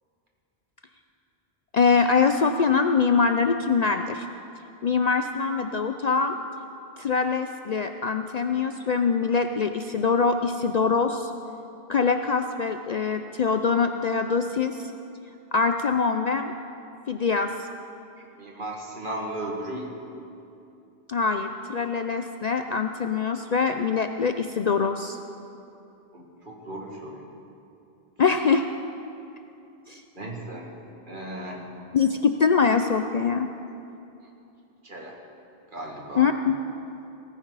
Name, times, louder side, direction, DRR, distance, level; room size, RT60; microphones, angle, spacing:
voice 1, 1.7-4.3 4.8-6.4 7.0-11.3 11.9-14.9 15.5-16.5 17.1-17.5 21.1-25.2 28.2-28.6 29.9-30.0 31.9-33.5 36.2-36.6, left 5 dB, 50° left, 6 dB, 0.5 m, -23 dB
voice 2, 18.2-19.9 26.1-27.2 30.2-30.7 31.1-31.7 34.8-35.1 35.7-36.3, right 1 dB, 55° right, -1 dB, 2.2 m, -36 dB
18.0 x 15.5 x 4.0 m, 2.7 s
omnidirectional pair, 1.1 m